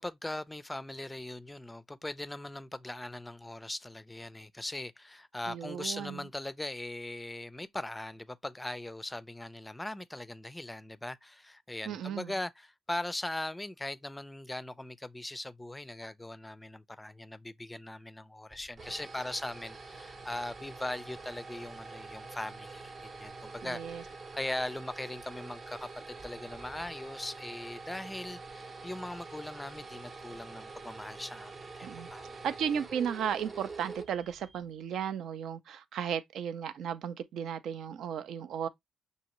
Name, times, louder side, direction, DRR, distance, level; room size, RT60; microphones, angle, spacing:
voice 1, 0.0-32.4, left 1 dB, 10° left, 0.4 m, -40 dB
voice 2, 5.5-6.2 11.9-12.3 23.6-24.0 31.8-32.1 32.4-38.7, right 8 dB, 75° right, 0.5 m, -35 dB
sound 1, 18.5-34.7, right 3 dB, 40° right, 0.8 m, -46 dB
6.2 x 2.8 x 2.9 m
cardioid pair, 90°, 0 cm